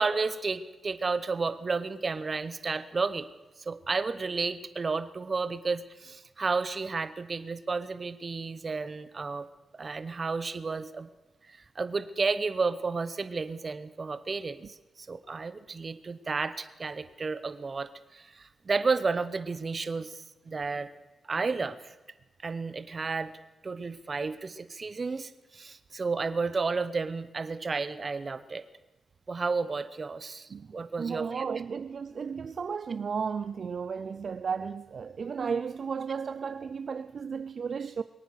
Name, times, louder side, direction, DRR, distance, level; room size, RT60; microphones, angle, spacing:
voice 1, 0.0-3.3 3.6-9.5 9.8-11.1 11.5-20.9 21.2-21.9 22.4-23.3 23.6-28.6 29.3-31.5, right 4 dB, 40° right, 0.9 m, -32 dB
voice 2, 30.5-38.0, right 6 dB, 55° right, 0.4 m, -34 dB
22.5 x 9.1 x 6.5 m
cardioid pair, 90°, 0 cm